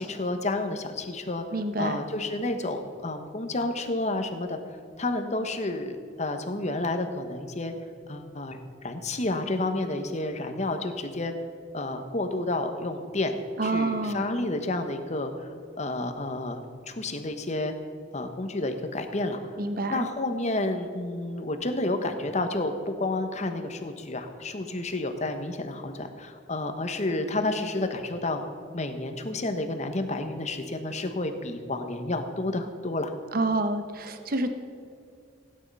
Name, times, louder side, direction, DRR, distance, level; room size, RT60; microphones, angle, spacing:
voice 1, 0.0-1.4 1.8-4.6 5.0-7.7 8.1-11.3 11.7-13.4 13.6-17.7 18.1-19.4 19.9-28.5 28.7-33.1, left 2 dB, 40° left, 7 dB, 1.2 m, -30 dB
voice 2, 1.5-2.0 13.6-14.2 19.6-20.1 33.3-34.5, right 2 dB, 50° right, 8 dB, 1.0 m, -28 dB
16.5 x 10.0 x 5.5 m, 2.2 s
head